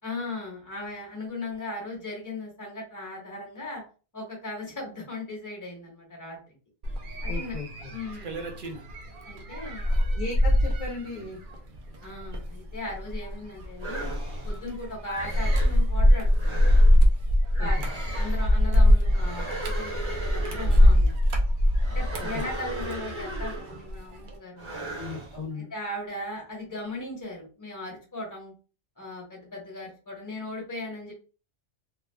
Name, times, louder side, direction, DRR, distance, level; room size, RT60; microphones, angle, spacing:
voice 1, 0.0-3.8 4.1-6.5 7.2-7.6 7.9-8.4 9.2-9.9 12.0-14.1 14.4-16.6 17.6-17.9 18.1-21.2 21.9-24.9 25.5-28.5 29.0-31.1, left 2 dB, 15° left, -2 dB, 0.9 m, -38 dB
sound 1, 6.8-23.6 23.9-24.3, left 1 dB, 60° right, 0.6 m, -23 dB
voice 2, 7.3-7.9 10.1-11.4 17.6-17.9 22.2-22.4 25.0-25.7, left 3 dB, 50° left, -1 dB, 0.6 m, -36 dB
sound 2, 13.8-14.6 15.1-15.8 16.3-17.0 17.5-18.5 19.0-21.0 21.7-23.9 24.6-25.4, right 2 dB, 30° right, 0.8 m, -37 dB
2.9 x 2.3 x 2.2 m, 0.35 s
omnidirectional pair, 1.2 m